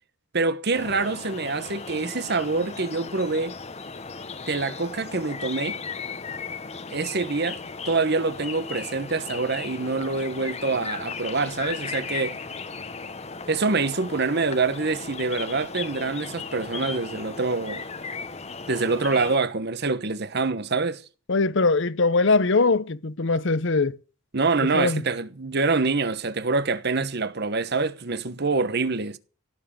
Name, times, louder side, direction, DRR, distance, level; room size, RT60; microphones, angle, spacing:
voice 1, 0.3-3.6 4.5-5.8 6.9-7.6 7.9-12.4 13.5-17.8 18.7-21.0 24.3-29.2, right 3 dB, 50° right, 1.1 m, -25 dB
sound 1, 0.7-19.4, left 5 dB, 30° left, 1.1 m, -36 dB
voice 2, 21.3-24.0 24.7-25.0, left 3 dB, 60° left, 0.8 m, -21 dB
17.0 x 7.5 x 8.6 m
head